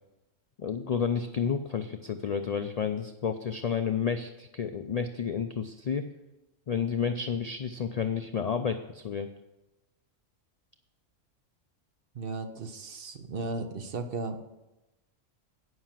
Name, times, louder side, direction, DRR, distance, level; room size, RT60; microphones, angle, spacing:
voice 1, 0.6-6.1 6.7-9.3, left 6 dB, 85° left, 8 dB, 0.3 m, -31 dB
voice 2, 12.1-14.5, right 3 dB, 50° right, 7 dB, 0.9 m, -36 dB
9.6 x 5.6 x 7.4 m, 1.0 s
omnidirectional pair, 1.3 m